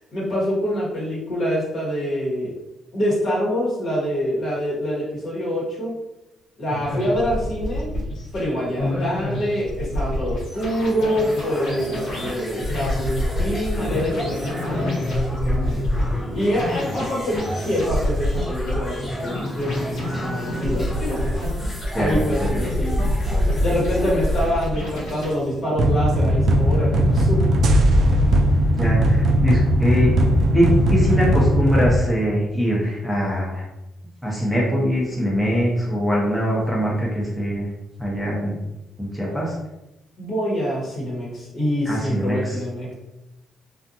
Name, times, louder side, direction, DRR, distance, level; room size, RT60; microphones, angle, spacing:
voice 1, 0.1-2.5 2.9-5.9 6.6-7.9 8.3-15.8 16.3-21.4 21.9-23.1 23.6-27.4 40.2-42.9, equal, 55° left, -5 dB, 1.1 m, -25 dB
sound 1, 6.7-25.6, left 1 dB, 80° left, 1.0 m, -27 dB
sound 2, 9.5-24.5, left 1 dB, 15° left, 1.1 m, -32 dB
voice 2, 21.9-22.7 28.8-30.1 30.5-33.6 34.2-37.7 38.0-38.6 39.0-39.6 41.9-42.6, equal, ahead, -5 dB, 0.7 m, -22 dB
sound 3, 25.8-32.0, equal, 65° right, 0.3 m, -18 dB
2.5 x 2.3 x 2.6 m, 0.95 s
cardioid pair, 90°, 0 cm